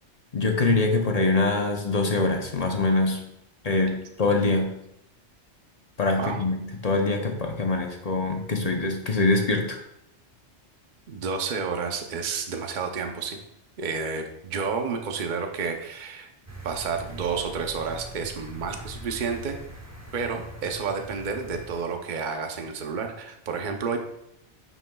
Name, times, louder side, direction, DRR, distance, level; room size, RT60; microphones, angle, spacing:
voice 1, 0.3-3.2 3.6-4.7 6.0-9.8, left 3 dB, 40° left, 3 dB, 0.8 m, -24 dB
voice 2, 11.1-13.4 13.8-16.3 16.6-19.6 20.1-24.0, right 5 dB, 45° right, 4 dB, 0.8 m, -30 dB
sound 1, 16.5-21.8, right 1 dB, 15° right, 0.9 m, -42 dB
9.1 x 6.1 x 2.3 m, 0.79 s
omnidirectional pair, 1.2 m